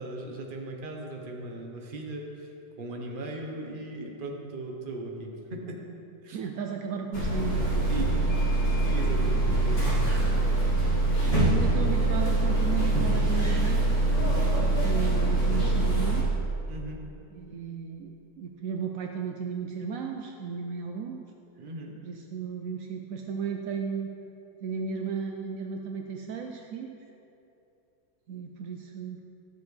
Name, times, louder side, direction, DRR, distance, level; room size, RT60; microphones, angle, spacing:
voice 1, 0.0-2.5 2.8-5.8 6.2-6.4 7.9-8.1 8.8-10.2 16.7-17.0 21.6-21.9, right 2 dB, 40° right, 1 dB, 0.9 m, -38 dB
voice 2, 6.3-8.4 11.4-13.9 14.6-16.3 17.3-21.2 22.0-24.1 24.6-26.9 28.3-29.2, right 6 dB, 80° right, 3 dB, 0.7 m, -35 dB
sound 1, 7.1-16.2, right 2 dB, 35° left, 2.2 m, -24 dB
12.5 x 6.9 x 3.2 m, 2.8 s
omnidirectional pair, 1.9 m